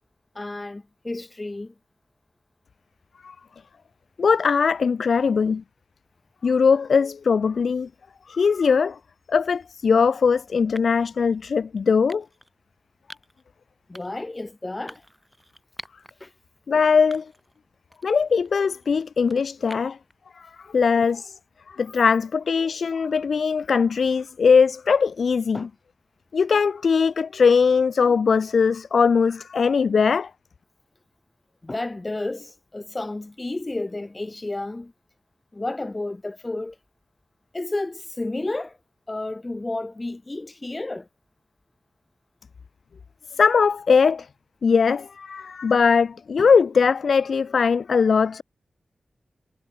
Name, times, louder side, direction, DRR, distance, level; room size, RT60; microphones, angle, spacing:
voice 1, 0.3-1.7 13.9-15.0 16.2-16.3 25.5-25.7 31.6-34.9 35.5-36.8 37.5-38.8 39.1-41.1 46.4-46.5, left 2 dB, 30° left, 4.3 m, -31 dB
voice 2, 4.2-5.6 6.4-7.9 8.3-9.0 9.3-12.2 16.7-17.3 18.0-20.0 20.4-21.4 21.7-25.7 26.3-30.3 43.4-44.3 44.6-48.4, left 5 dB, 80° left, 0.5 m, -20 dB
sound 1, 9.4-9.7 10.7-11.1 12.1-12.5 13.1-13.4 13.9-14.3 14.9-16.1 16.6-16.7 17.1-17.6 17.9-20.1, right 1 dB, 10° right, 5.9 m, -46 dB
wide cardioid pair, 75°, 0 cm